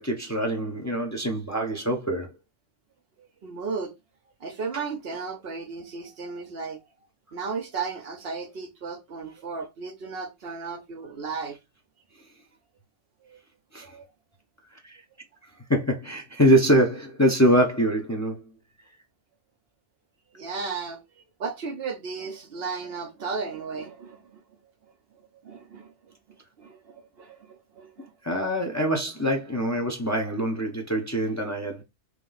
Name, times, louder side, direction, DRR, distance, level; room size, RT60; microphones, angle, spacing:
voice 1, 0.0-2.3 13.7-13.9 14.8-15.0 15.7-18.4 28.2-31.8, equal, 15° left, 0.7 m, -24 dB
voice 2, 3.2-3.9 4.4-6.8 7.3-11.6 13.2-13.4 13.8-14.1 20.3-24.4 25.4-28.1, right 4 dB, 60° right, 0.8 m, -35 dB
3.2 x 3.1 x 3.9 m
omnidirectional pair, 1.3 m